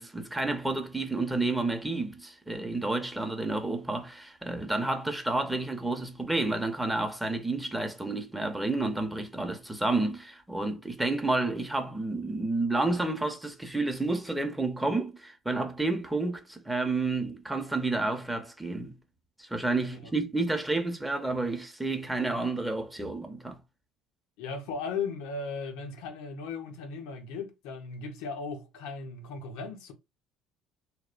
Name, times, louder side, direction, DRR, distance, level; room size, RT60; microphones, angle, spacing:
voice 1, 0.0-18.9 19.4-23.6, right 2 dB, 10° right, 0.6 m, -30 dB
voice 2, 24.4-29.9, left 4 dB, 75° left, 0.5 m, -37 dB
2.6 x 2.1 x 2.4 m
hypercardioid pair, 70°, 0 cm